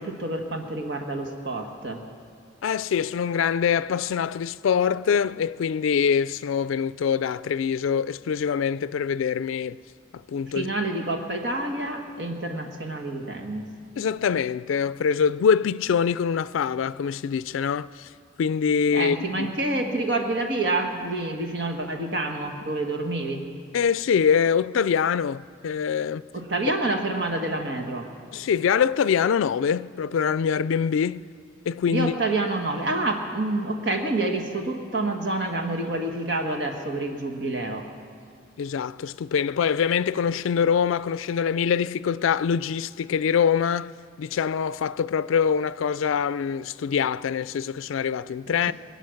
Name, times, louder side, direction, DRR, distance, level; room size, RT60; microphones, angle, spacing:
voice 1, 0.0-2.0 10.5-13.7 18.9-23.4 26.3-28.1 31.9-37.8, right 2 dB, 60° right, 1.4 m, -28 dB
voice 2, 2.6-9.8 10.1-10.7 14.0-18.1 18.4-19.5 23.7-26.2 28.3-31.2 31.6-32.1 38.6-48.7, left 7 dB, 90° left, 0.3 m, -24 dB
23.5 x 8.8 x 6.4 m
head